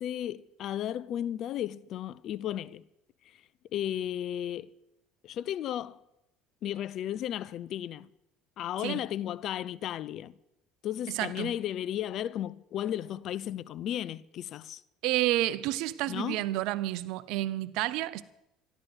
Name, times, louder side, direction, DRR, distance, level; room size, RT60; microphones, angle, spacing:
voice 1, 0.0-2.8 3.7-4.7 5.2-6.0 6.6-8.1 8.6-10.3 10.8-14.8 16.1-16.4, left 11 dB, 55° left, 0.6 m, -34 dB
voice 2, 11.1-11.5 15.0-18.2, right 15 dB, 70° right, 0.7 m, -30 dB
13.5 x 11.5 x 8.0 m
supercardioid pair, 80°, 0 cm